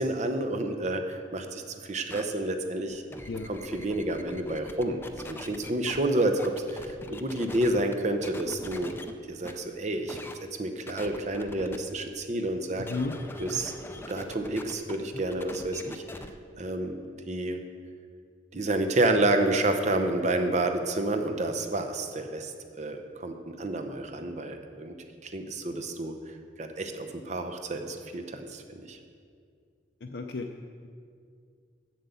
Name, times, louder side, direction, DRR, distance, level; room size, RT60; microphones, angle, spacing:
voice 1, 0.0-3.0 3.5-5.0 5.3-8.9 9.3-10.2 10.6-12.9 13.4-13.7 14.1-16.0 16.6-17.6 18.5-25.0 25.2-26.1 26.6-29.0, right 1 dB, 40° right, 6 dB, 0.8 m, -29 dB
sound 1, 2.1-2.2 2.9-6.0 6.4-7.9 8.2-9.1 9.4-9.5 10.1-10.3 10.9-11.8 12.8-16.3, left 1 dB, 10° left, 0.4 m, -42 dB
voice 2, 12.8-13.2 30.0-30.5, left 3 dB, 65° left, 2 dB, 0.5 m, -33 dB
7.9 x 7.7 x 7.0 m, 2.2 s
head